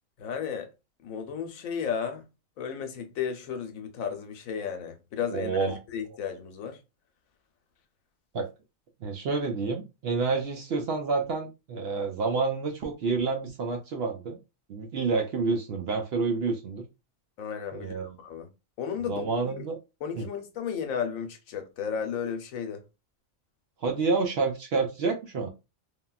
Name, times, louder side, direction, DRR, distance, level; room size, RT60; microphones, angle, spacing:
voice 1, 0.2-0.7 1.0-2.2 2.6-6.8 17.4-18.5 18.8-19.7 20.0-22.8, left 7 dB, 85° left, 1.1 m, -34 dB
voice 2, 5.3-5.8 8.3-8.5 9.0-14.4 14.7-16.9 17.7-18.2 19.1-19.8 20.2-20.3 23.8-25.5, right 4 dB, 65° right, 0.7 m, -28 dB
3.5 x 2.2 x 2.3 m
omnidirectional pair, 1.4 m